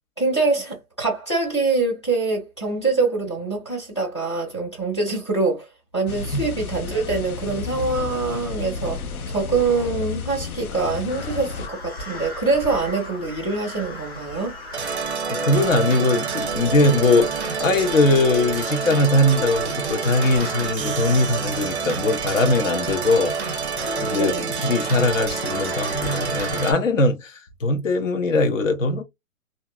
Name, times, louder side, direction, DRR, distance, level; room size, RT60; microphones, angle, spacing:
voice 1, 0.2-5.7 5.9-14.5 24.1-24.6, right 3 dB, 20° left, 0.6 m, -24 dB
sound 1, 6.1-11.7, left 6 dB, 90° left, 0.7 m, -32 dB
sound 2, 11.1-26.7, left 2 dB, 45° left, 1.5 m, -37 dB
sound 3, 14.7-26.7, right 5 dB, 50° right, 0.6 m, -28 dB
voice 2, 15.3-29.0, left 2 dB, 60° left, 0.9 m, -21 dB
2.7 x 2.4 x 2.6 m
hypercardioid pair, 180°, 43 cm